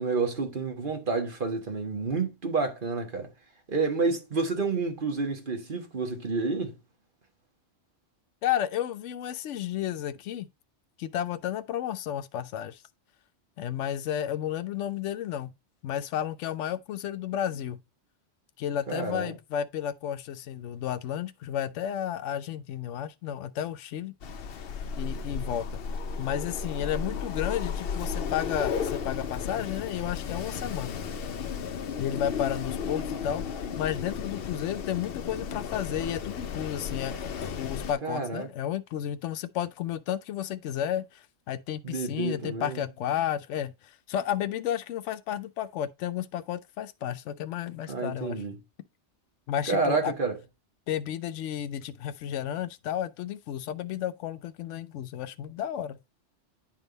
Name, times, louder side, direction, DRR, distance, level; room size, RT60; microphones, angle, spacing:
voice 1, 0.0-3.3 3.7-6.8 18.9-19.3 38.0-38.5 41.8-42.8 47.9-48.6 49.7-50.4, right 4 dB, 45° right, 1.6 m, -29 dB
voice 2, 8.4-10.5 11.0-12.8 13.6-15.5 15.8-17.8 18.6-24.1 25.0-25.7 26.2-31.0 32.0-48.4 49.5-50.1 50.9-56.0, left 10 dB, 85° left, 0.9 m, -32 dB
Wind, 24.2-37.9, left 6 dB, 60° left, 0.8 m, -34 dB
10.0 x 3.6 x 3.9 m
omnidirectional pair, 1.2 m